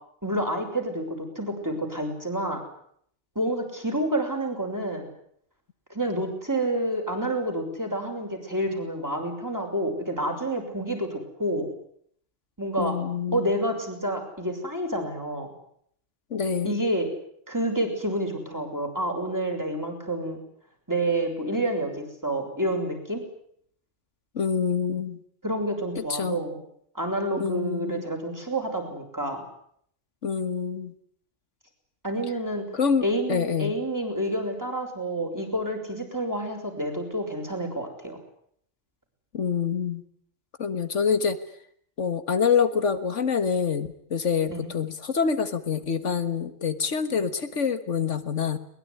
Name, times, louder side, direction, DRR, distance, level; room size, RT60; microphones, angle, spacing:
voice 1, 0.2-2.6 3.3-5.1 5.9-11.7 12.6-13.0 13.3-15.5 16.6-17.1 17.5-20.4 20.9-23.2 25.4-26.6 26.9-29.4 32.0-32.7 33.0-38.2 44.5-44.7, right 1 dB, 15° right, 3 dB, 6.4 m, -29 dB
voice 2, 12.8-13.5 16.3-16.8 24.4-25.2 26.0-26.4 27.4-28.1 30.2-30.9 32.7-33.7 39.3-40.0 40.6-41.4 42.0-48.6, left 6 dB, 80° left, 11 dB, 1.9 m, -26 dB
22.0 x 21.5 x 9.9 m, 0.67 s
omnidirectional pair, 1.2 m